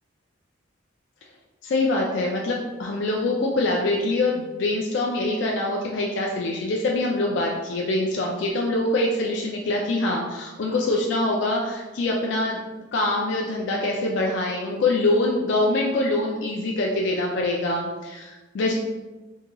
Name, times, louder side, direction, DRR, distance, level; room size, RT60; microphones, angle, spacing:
voice 1, 1.6-12.6 12.9-18.7, left 2 dB, 60° left, -1 dB, 0.3 m, -24 dB
3.6 x 2.2 x 2.9 m, 1.2 s
head